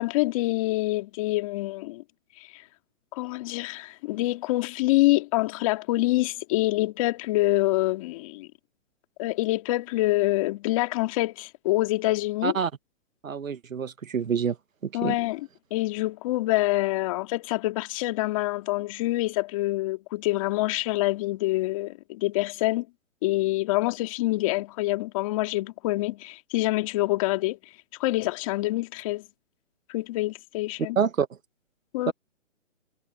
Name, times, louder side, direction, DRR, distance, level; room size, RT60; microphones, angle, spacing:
voice 1, 0.0-2.0 2.4-2.6 3.1-8.5 9.2-12.6 14.9-22.9 23.2-27.6 28.0-29.3 29.9-31.0 31.9-32.1, left 19 dB, 25° left, 2.8 m, -26 dB
voice 2, 13.2-14.6 14.8-15.2 31.0-31.3 32.1-32.2, right 7 dB, 85° right, 1.8 m, -26 dB
hypercardioid pair, 160°, 39 cm